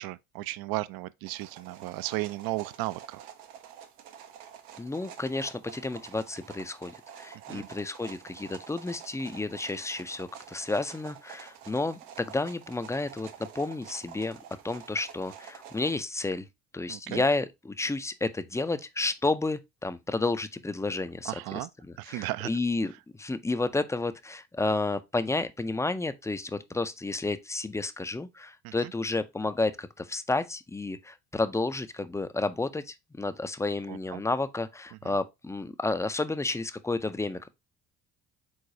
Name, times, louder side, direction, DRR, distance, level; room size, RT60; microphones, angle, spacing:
voice 1, 0.0-3.3 7.5-7.7 16.9-17.2 21.2-21.7 22.0-22.5 28.6-28.9 33.9-34.2, right 18 dB, 60° right, 0.5 m, -35 dB
sound 1, 1.2-15.9, right 9 dB, 85° right, 0.8 m, -48 dB
voice 2, 4.8-16.5 16.7-21.7 22.1-22.9 23.2-37.5, left 3 dB, 5° left, 0.4 m, -31 dB
4.8 x 3.9 x 2.6 m
hypercardioid pair, 70°, 42 cm